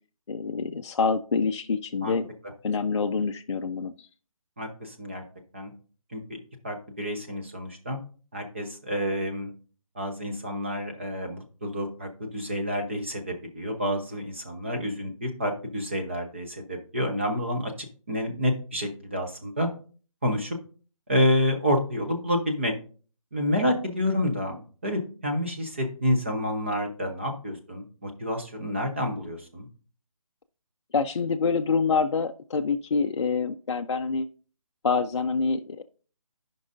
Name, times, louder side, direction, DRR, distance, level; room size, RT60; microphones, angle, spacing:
voice 1, 0.3-2.3 2.6-3.9 30.9-34.3 34.8-35.8, left 5 dB, 55° left, 6 dB, 0.4 m, -26 dB
voice 2, 4.6-5.2 5.5-5.7 6.1-6.4 6.6-8.0 8.3-9.5 9.9-17.7 18.1-19.7 20.2-20.6 21.1-22.7 23.3-29.7, equal, 20° right, 3 dB, 0.6 m, -28 dB
12.5 x 5.3 x 2.5 m, 0.40 s
hypercardioid pair, 175°, 18 cm